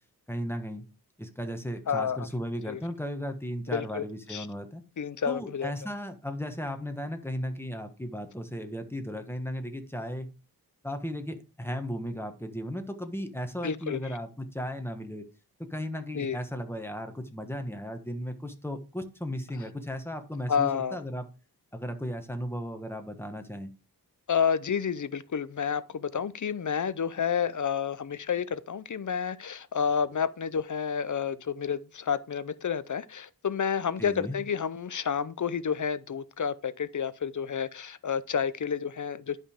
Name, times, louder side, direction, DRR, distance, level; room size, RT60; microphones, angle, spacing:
voice 1, 0.3-0.9 1.2-4.8 5.3-10.3 10.8-15.2 15.6-21.3 21.7-23.7 34.0-34.4, equal, 5° left, 1.3 m, -35 dB
voice 2, 1.9-2.2 2.7-2.8 3.7-4.0 4.3-4.5 5.0-5.7 13.6-14.0 16.1-16.4 20.5-21.0 24.3-39.4, left 7 dB, 50° left, 0.6 m, -30 dB
11.0 x 5.3 x 3.6 m
wide cardioid pair, 100°, 38 cm